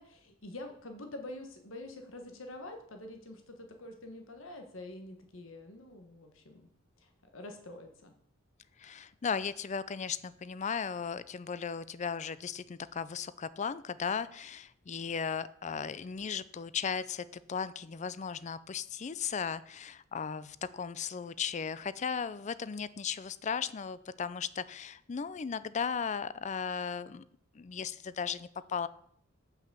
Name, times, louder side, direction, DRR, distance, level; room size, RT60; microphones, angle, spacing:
voice 1, 0.0-6.7 7.0-8.1, left 1 dB, 80° left, 5 dB, 1.4 m, -46 dB
voice 2, 8.8-27.2 27.5-28.9, left 6 dB, 35° left, 17 dB, 0.4 m, -36 dB
7.9 x 5.9 x 6.8 m, 0.65 s
head